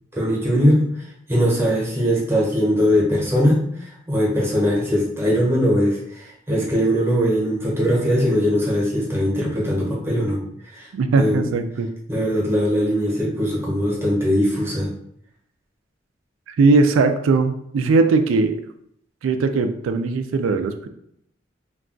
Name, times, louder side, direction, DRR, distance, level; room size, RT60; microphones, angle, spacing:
voice 1, 0.1-0.8 1.3-10.9 11.1-11.5 12.1-14.9, equal, 15° right, -4 dB, 0.8 m, -20 dB
voice 2, 10.9-11.9 16.5-18.6 19.2-20.9, right 3 dB, 90° right, 8 dB, 0.3 m, -19 dB
2.3 x 2.2 x 3.7 m, 0.72 s
head